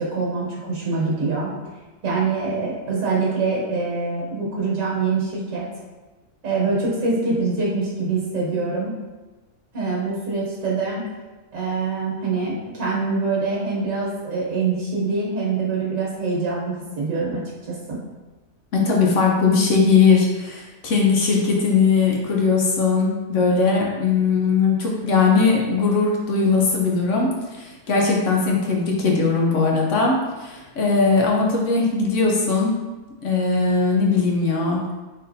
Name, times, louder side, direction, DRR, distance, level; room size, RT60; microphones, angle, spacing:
voice 1, 0.0-1.5 2.0-5.7 6.4-9.0 9.7-11.1 11.5-18.0, right 4 dB, 55° right, -4 dB, 1.5 m, -24 dB
voice 2, 18.7-32.7 33.2-34.8, left 4 dB, 65° left, -1 dB, 0.9 m, -19 dB
4.0 x 3.8 x 2.6 m, 1.2 s
omnidirectional pair, 1.7 m